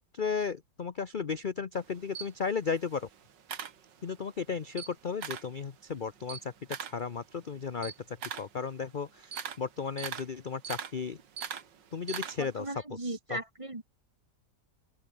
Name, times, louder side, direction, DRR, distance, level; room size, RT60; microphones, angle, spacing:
voice 1, 0.0-3.1 4.0-11.2 11.9-13.4, left 5 dB, 40° left, 0.8 m, -35 dB
Camera, 1.7-4.3 4.7-5.6 5.9-12.7, right 8 dB, 85° right, 2.2 m, -41 dB
voice 2, 12.4-13.8, right 2 dB, 20° right, 1.5 m, -38 dB
open air
omnidirectional pair, 1.9 m